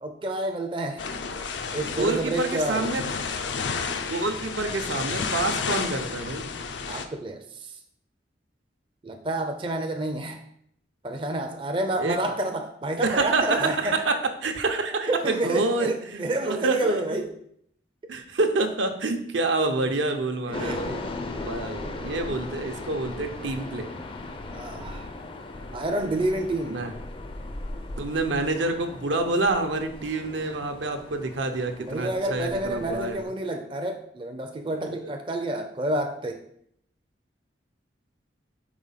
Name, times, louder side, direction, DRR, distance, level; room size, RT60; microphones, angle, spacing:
voice 1, 0.0-1.0 1.7-2.9 6.8-7.8 9.0-10.4 11.0-14.0 15.0-17.3 20.5-20.9 24.5-25.1 25.7-26.8 31.8-36.4, right 1 dB, 25° right, 5 dB, 0.5 m, -29 dB
sound 1, 1.0-7.1, left 5 dB, 75° left, 0.6 m, -31 dB
voice 2, 1.9-3.0 4.1-6.5 12.0-12.2 13.0-14.1 14.4-17.2 18.1-21.1 21.4-23.9 26.7-26.9 28.0-33.2 34.9-35.0, right 2 dB, 80° right, 5 dB, 0.8 m, -27 dB
sound 2, 20.5-33.2, left 2 dB, 30° left, 0.4 m, -38 dB
4.9 x 4.1 x 5.6 m, 0.70 s
head